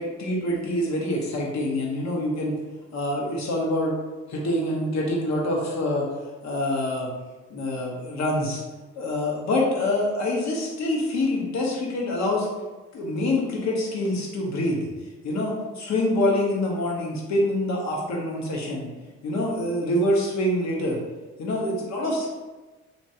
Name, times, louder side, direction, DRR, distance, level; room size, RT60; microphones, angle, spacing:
voice 1, 0.0-2.5 2.9-3.9 4.3-6.1 6.4-7.1 7.5-8.6 9.0-12.5 12.9-14.8 15.2-18.9 19.2-21.0 21.4-22.3, left 1 dB, 65° left, -2 dB, 1.0 m, -25 dB
3.1 x 3.1 x 2.8 m, 1.2 s
cardioid pair, 90°, 30 cm